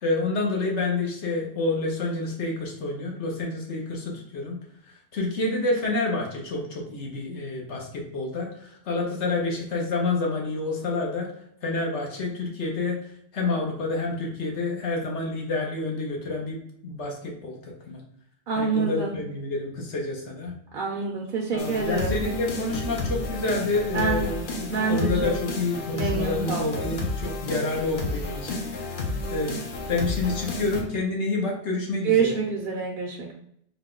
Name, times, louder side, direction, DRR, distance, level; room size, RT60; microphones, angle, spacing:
voice 1, 0.0-4.6 5.1-11.3 11.6-13.0 13.3-18.0 18.5-20.5 21.5-29.0 29.3-29.6 29.9-32.4, left 3 dB, 75° left, 0 dB, 1.1 m, -28 dB
voice 2, 18.5-19.1 20.7-22.3 23.9-24.2 24.7-25.3 25.9-26.9 32.0-33.3, right 5 dB, 55° right, -1 dB, 0.7 m, -26 dB
sound 1, 21.6-30.8, left 2 dB, 55° left, 0.7 m, -31 dB
4.0 x 2.2 x 3.7 m, 0.69 s
omnidirectional pair, 1.2 m